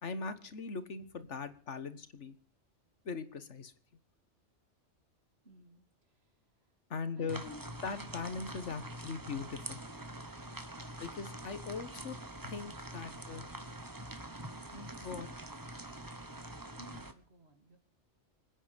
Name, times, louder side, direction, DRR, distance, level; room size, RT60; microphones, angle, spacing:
voice 1, 0.0-2.4 3.0-3.7 6.9-7.4 7.8-9.8 11.0-12.2 12.4-13.4 14.7-15.3, left 4 dB, 80° left, 12 dB, 1.7 m, -40 dB
voice 2, 5.4-5.8 7.2-7.6 11.7-11.9 16.8-17.8, left 2 dB, 60° right, 6 dB, 3.0 m, -54 dB
sound 1, 7.3-17.1, right 1 dB, 20° right, 1.2 m, -45 dB
26.0 x 9.7 x 5.2 m, 0.43 s
omnidirectional pair, 1.2 m